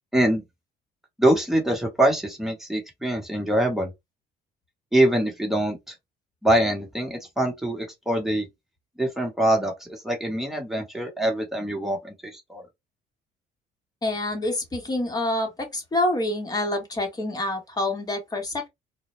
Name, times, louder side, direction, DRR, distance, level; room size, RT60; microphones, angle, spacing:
voice 1, 0.1-0.4 1.2-3.9 4.9-5.9 6.4-8.5 9.0-12.6, right 1 dB, ahead, 1.0 m, -24 dB
voice 2, 14.0-18.7, left 1 dB, 25° left, 1.0 m, -27 dB
2.2 x 2.1 x 2.9 m
cardioid pair, 110°, 17 cm